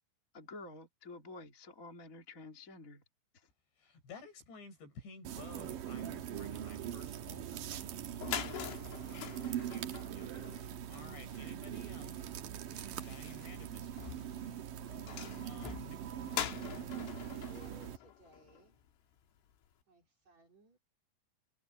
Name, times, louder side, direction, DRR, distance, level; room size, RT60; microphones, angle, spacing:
voice 1, 0.3-3.0 3.3-3.5, left 3 dB, 20° left, 2.5 m, -50 dB
voice 2, 3.8-7.9 8.3-8.6 9.1-12.3 13.0-14.2 15.4-16.4, left 3 dB, 65° left, 8.6 m, -54 dB
sound 1, 5.2-18.0, right 10 dB, 65° right, 2.2 m, -42 dB
sound 2, 7.8-7.9 8.1-18.9, left 10 dB, 85° left, 4.8 m, -45 dB
voice 3, 17.2-18.8 19.9-20.8, right 3 dB, 40° right, 4.5 m, -62 dB
omnidirectional pair, 5.4 m